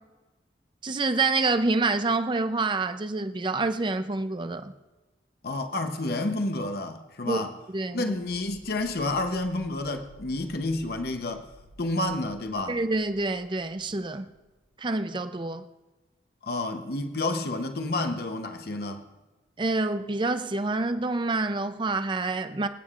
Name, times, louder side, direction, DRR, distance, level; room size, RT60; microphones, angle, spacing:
voice 1, 0.8-4.7 7.2-7.4 7.7-8.1 12.7-14.3 14.8-15.7 19.6-22.7, right 3 dB, 25° right, 0.5 m, -27 dB
voice 2, 5.4-7.5 7.9-11.5 11.8-12.8 16.4-19.0, left 2 dB, 55° left, 0.8 m, -30 dB
sound 1, 8.1-14.8, right 1 dB, 75° left, 1.1 m, -54 dB
25.5 x 9.0 x 2.4 m
head